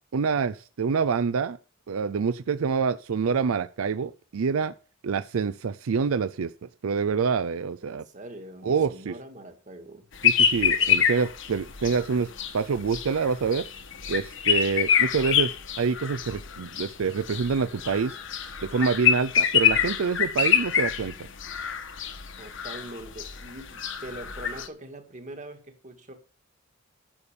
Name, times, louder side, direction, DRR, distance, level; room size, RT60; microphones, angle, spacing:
voice 1, 0.1-1.6 1.9-4.7 5.0-6.5 6.8-8.0 8.6-9.1 10.2-13.6 14.1-15.5 15.8-18.2 18.6-21.1, right 5 dB, 80° right, 0.5 m, -26 dB
voice 2, 7.8-10.1 10.8-11.0 22.4-26.1, right 1 dB, 35° right, 1.9 m, -43 dB
sound 1, 10.2-24.7, left 8 dB, 60° left, 1.2 m, -26 dB
11.0 x 6.9 x 6.9 m
head